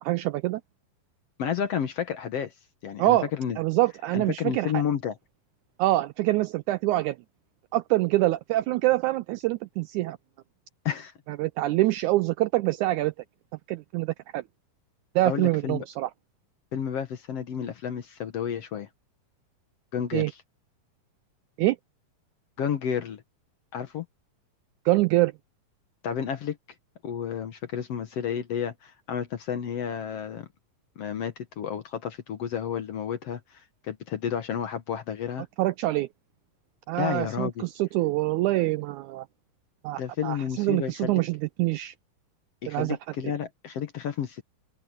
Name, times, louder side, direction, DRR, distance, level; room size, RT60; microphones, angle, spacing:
voice 1, 0.0-0.6 3.0-3.3 3.6-4.8 5.8-7.2 7.7-10.2 11.3-13.1 13.7-14.4 15.1-16.1 20.1-20.3 21.6-21.8 24.8-25.3 35.6-36.1 36.9-39.2 39.8-41.9 42.7-43.0, right 17 dB, 80° right, 1.7 m, -25 dB
voice 2, 1.4-2.5 2.8-3.6 4.1-5.2 10.8-11.1 15.2-15.9 16.7-18.9 19.9-20.4 22.6-23.2 23.7-24.0 26.0-26.6 27.0-30.5 31.0-35.5 37.0-37.7 40.0-41.2 42.6-44.4, left 8 dB, 60° left, 1.9 m, -31 dB
open air
omnidirectional pair, 3.9 m